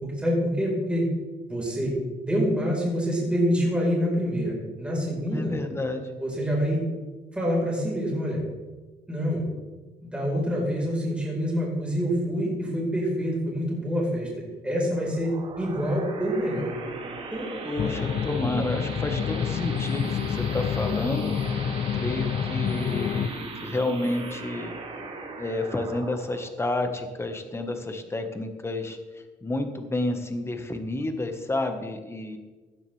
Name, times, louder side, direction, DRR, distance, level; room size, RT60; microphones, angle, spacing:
voice 1, 0.0-1.1 1.5-1.9 2.2-5.5 6.2-6.8 7.3-8.4 9.1-9.4 10.0-16.7 17.3-17.5, equal, 5° right, -4 dB, 4.7 m, -26 dB
voice 2, 5.3-6.1 17.6-21.3 21.9-24.7 25.4-29.0 29.4-32.4, left 2 dB, 15° left, 6 dB, 1.5 m, -30 dB
sound 1, 14.9-28.0, right 3 dB, 35° right, 2.5 m, -39 dB
sound 2, 17.8-23.3, left 8 dB, 40° left, 0.5 m, -28 dB
17.0 x 11.0 x 3.5 m, 1.3 s
cardioid pair, 110°, 17 cm